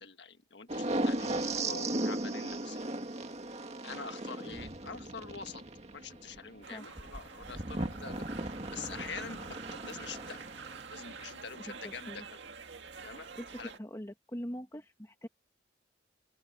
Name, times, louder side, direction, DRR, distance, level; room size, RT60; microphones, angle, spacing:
voice 1, 0.0-2.9 3.8-5.6 5.9-10.4 10.9-12.4 13.0-13.3 13.6-13.7, left 5 dB, 65° left, 1.5 m, -45 dB
sound 1, 0.7-11.2 13.5-13.7, right 1 dB, 35° right, 2.0 m, -37 dB
sound 2, 6.6-13.8, right 5 dB, 70° right, 2.0 m, -48 dB
voice 2, 6.7-7.0 11.6-12.3 13.3-15.3, equal, 15° left, 1.6 m, -44 dB
open air
head